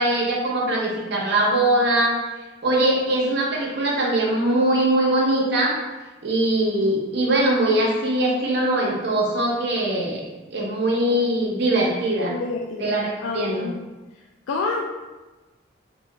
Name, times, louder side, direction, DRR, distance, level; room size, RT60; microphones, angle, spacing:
voice 1, 0.0-2.2 2.6-5.8 6.2-12.3 12.8-13.7, right 1 dB, 55° right, -2 dB, 0.7 m, -21 dB
voice 2, 12.3-13.9 14.5-14.9, left 4 dB, 80° left, 0 dB, 0.3 m, -28 dB
2.8 x 2.7 x 3.3 m, 1.1 s
head